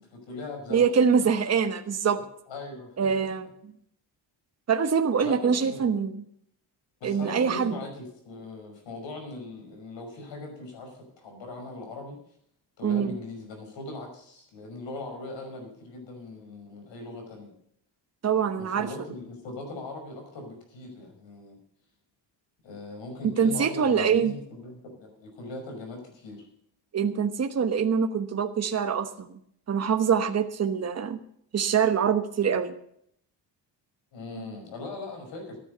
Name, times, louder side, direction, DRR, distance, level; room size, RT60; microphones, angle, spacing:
voice 1, 0.0-0.9 2.5-3.1 5.2-5.9 7.0-12.2 12.8-17.5 18.6-21.6 22.6-26.5 34.1-35.6, left 2 dB, 85° left, 4 dB, 5.6 m, -40 dB
voice 2, 0.7-2.2 3.0-3.5 4.7-6.2 7.0-7.8 12.8-13.2 18.2-18.9 23.4-24.3 26.9-29.3 29.7-31.2 31.5-32.7, right 6 dB, 35° right, 8 dB, 1.1 m, -24 dB
14.0 x 9.7 x 6.8 m, 0.68 s
cardioid pair, 110°, 44 cm